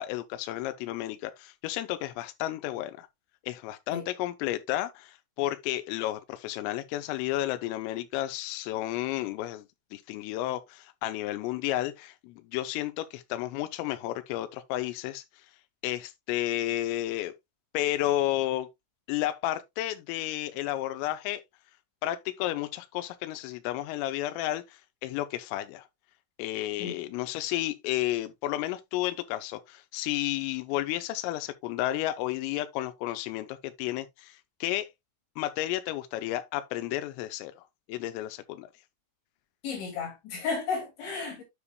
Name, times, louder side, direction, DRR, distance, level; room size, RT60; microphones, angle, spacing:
voice 1, 0.0-3.1 3.4-9.7 9.9-15.5 15.8-17.3 17.7-18.7 19.1-21.4 22.0-25.9 26.4-34.9 35.4-38.7, left 14 dB, 90° left, 3.3 m, -32 dB
voice 2, 39.6-41.4, left 5 dB, 65° left, 4.6 m, -33 dB
9.8 x 6.6 x 2.2 m
omnidirectional pair, 5.7 m